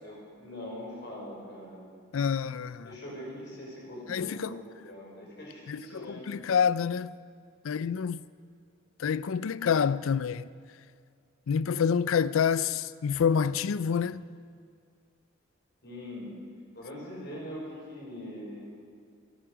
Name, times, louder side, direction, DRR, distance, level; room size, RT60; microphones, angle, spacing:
voice 1, 0.0-1.8 2.8-6.2 15.8-16.3 16.7-18.7, left 1 dB, 55° left, 5.0 m, -42 dB
voice 2, 2.1-2.9 4.1-4.6 5.7-7.1 7.6-8.2 9.0-10.5 11.5-14.2, left 7 dB, 85° left, 0.4 m, -27 dB
27.5 x 9.3 x 5.0 m
head